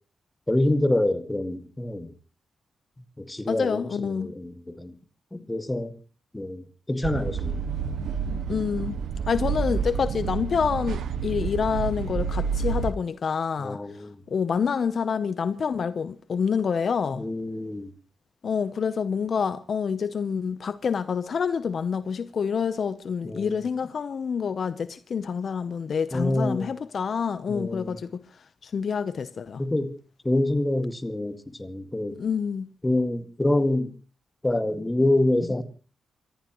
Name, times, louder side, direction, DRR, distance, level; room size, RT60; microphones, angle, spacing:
voice 1, 0.5-2.1 3.2-4.9 5.3-5.9 6.3-7.6 13.6-14.2 17.2-17.9 23.2-23.6 26.1-26.7 27.5-28.0 29.6-29.9 30.2-32.2 32.8-33.9 34.4-35.6, left 1 dB, 15° left, 1.9 m, -26 dB
voice 2, 3.5-4.3 8.5-8.9 9.3-13.8 14.3-17.3 18.4-28.2 28.6-29.6 32.2-32.7, left 6 dB, 60° left, 0.8 m, -27 dB
sound 1, 7.0-12.9, right 6 dB, 80° right, 0.9 m, -29 dB
28.0 x 14.5 x 3.1 m
cardioid pair, 70°, 0 cm